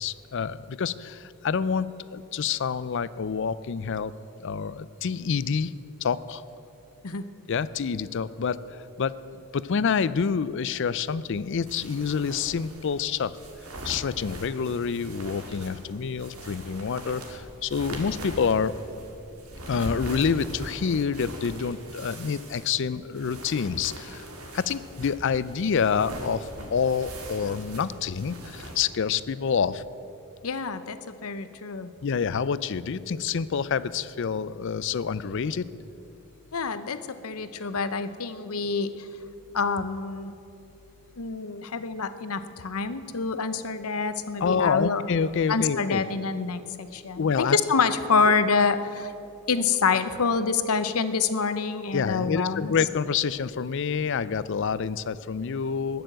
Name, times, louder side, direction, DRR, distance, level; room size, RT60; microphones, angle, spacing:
voice 1, 0.0-4.1 4.4-5.7 6.0-6.4 7.5-9.2 9.5-13.4 13.8-18.8 19.6-24.3 24.5-29.8 32.0-35.7 44.4-46.0 47.2-47.6 48.3-48.4 51.9-56.0, left 6 dB, 55° left, 17 dB, 0.4 m, -27 dB
sound 1, 11.7-28.8, right 1 dB, 80° right, 2.2 m, -41 dB
voice 2, 30.4-31.9 36.5-39.1 39.5-40.3 41.2-45.0 45.5-49.1 49.5-52.7, left 5 dB, 80° left, 11 dB, 0.8 m, -27 dB
20.0 x 6.9 x 7.6 m, 2.8 s
head